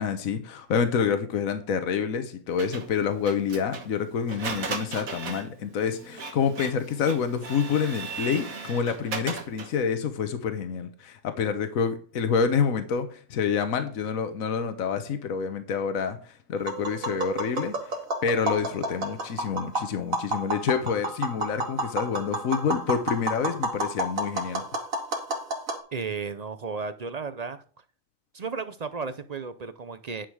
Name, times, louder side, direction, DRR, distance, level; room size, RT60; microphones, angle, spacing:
voice 1, 0.0-17.9 18.2-24.6, left 6 dB, 80° left, 9 dB, 1.4 m, -27 dB
Printer, 2.6-9.8, right 4 dB, 90° right, 1.8 m, -37 dB
Tap, 16.6-25.8, right 2 dB, 75° right, 2.2 m, -31 dB
voice 2, 25.9-27.6 28.3-30.3, right 5 dB, 45° right, 12 dB, 0.5 m, -34 dB
10.0 x 6.2 x 4.8 m, 0.42 s
omnidirectional pair, 1.4 m